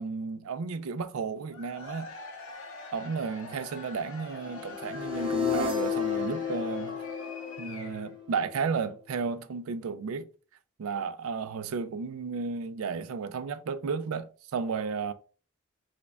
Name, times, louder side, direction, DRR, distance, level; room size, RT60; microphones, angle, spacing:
voice 1, 0.0-2.1 2.9-7.0 7.6-10.3 10.8-15.1, right 5 dB, 75° right, 0.4 m, -33 dB
Cheering / Crowd, 1.5-8.2, left 3 dB, 75° left, 0.8 m, -44 dB
sound 1, 4.5-8.6, left 6 dB, 25° right, 0.6 m, -32 dB
4.9 x 2.2 x 2.2 m
head